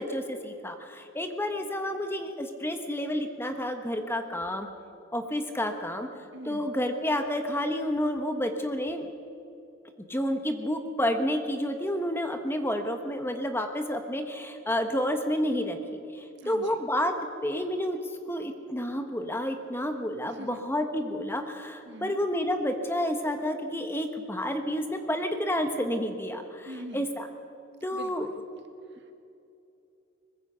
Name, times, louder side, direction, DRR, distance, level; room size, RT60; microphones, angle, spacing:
voice 1, 0.0-4.7 5.1-6.1 6.5-9.1 10.1-17.1 17.4-18.0 18.3-26.7 26.9-27.3 27.8-28.3, equal, 10° left, 6 dB, 1.2 m, -30 dB
voice 2, 6.3-6.8 16.4-16.8 20.2-20.6 21.8-22.2 26.6-27.1 27.9-28.4 28.9-29.1, equal, 55° right, 5 dB, 2.0 m, -44 dB
23.0 x 20.5 x 5.7 m, 2.7 s
head